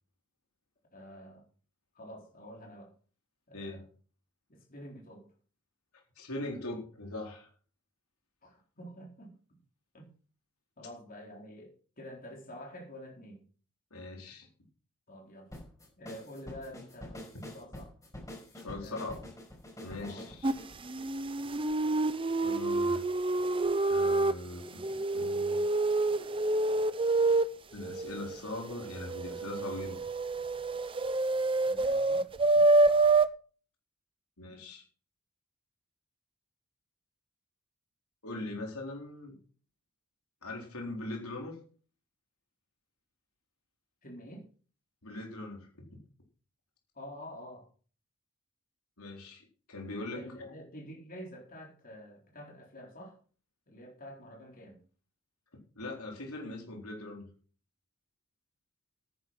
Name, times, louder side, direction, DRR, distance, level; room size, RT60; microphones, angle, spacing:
voice 1, 0.9-1.4 1.9-2.9 3.5-3.8 4.5-5.3 8.4-9.3 9.9-10.1 10.8-13.4 15.1-15.5 16.0-17.9 18.7-19.0 20.0-20.3 31.6-32.3 44.0-44.4 46.9-47.7 50.1-53.2 53.7-54.8, equal, 40° left, -1 dB, 4.1 m, -48 dB
voice 2, 6.2-7.5 13.9-14.5 18.5-19.3 19.8-20.5 22.4-23.0 23.9-25.6 27.7-30.0 34.4-34.8 38.2-39.4 40.4-41.6 45.0-46.0 49.0-50.5 55.8-57.3, left 2 dB, 75° left, 1 dB, 4.1 m, -41 dB
sound 1, 15.5-21.8, left 1 dB, 15° left, 5.1 m, -47 dB
sound 2, 20.4-20.5 20.9-24.3 24.6-27.5 27.8-33.3, right 2 dB, 25° right, 0.7 m, -27 dB
10.5 x 10.0 x 6.0 m, 0.41 s
head